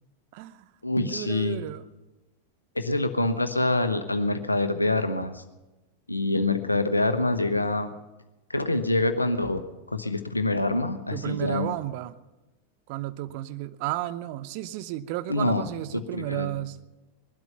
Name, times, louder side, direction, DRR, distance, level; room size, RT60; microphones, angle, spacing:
voice 1, 0.3-0.7 1.0-1.8 11.1-12.2 12.9-16.8, right 15 dB, 45° right, 13 dB, 0.7 m, -33 dB
voice 2, 0.8-1.6 2.7-5.4 6.1-7.9 8.5-9.6 9.9-11.8 15.3-15.6 15.9-16.5, left 2 dB, 85° left, 9 dB, 1.0 m, -26 dB
20.5 x 12.0 x 5.7 m, 1.1 s
figure-of-eight pair, 90°, 0 cm